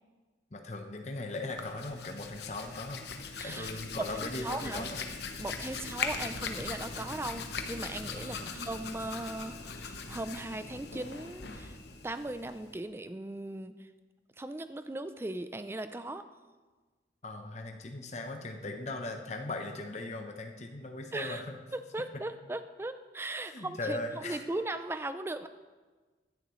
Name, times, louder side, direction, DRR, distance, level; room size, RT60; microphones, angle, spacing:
voice 1, 0.5-3.0 3.4-5.0 8.2-8.5 17.2-21.6 23.4-24.4, left 2 dB, 40° left, 4 dB, 0.8 m, -39 dB
Hands, 1.4-12.8, left 5 dB, 70° left, 0.9 m, -40 dB
voice 2, 3.4-4.9 5.4-11.8 12.0-13.9 14.4-16.2 21.1-21.4 21.7-25.5, right 2 dB, 15° right, 11 dB, 0.3 m, -38 dB
15.5 x 10.5 x 3.1 m, 1.3 s
head